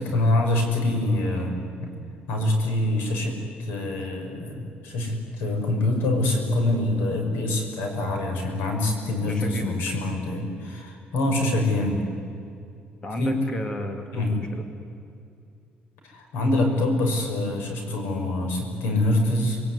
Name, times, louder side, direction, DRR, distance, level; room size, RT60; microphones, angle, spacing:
voice 1, 0.0-1.5 1.8-1.9 2.3-12.0 13.2-13.3 14.1-14.3 16.1-19.6, left 1 dB, 90° left, 3 dB, 6.3 m, -25 dB
voice 2, 9.3-9.9 11.3-11.5 13.0-14.7, left 1 dB, 25° left, 5 dB, 2.4 m, -32 dB
27.5 x 22.0 x 9.8 m, 2.5 s
cardioid pair, 155°, 4 cm